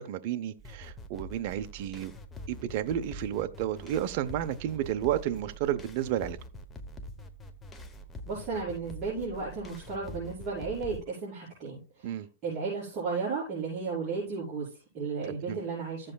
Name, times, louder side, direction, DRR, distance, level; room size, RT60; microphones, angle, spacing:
voice 1, 0.0-2.1 2.5-6.4 12.0-12.3 15.3-15.6, right 11 dB, 45° right, 0.6 m, -32 dB
sound 1, 0.6-11.0, equal, 15° left, 0.9 m, -45 dB
voice 2, 8.3-16.1, right 4 dB, 25° right, 5.5 m, -34 dB
14.5 x 7.6 x 2.3 m
supercardioid pair, 150°, 0 cm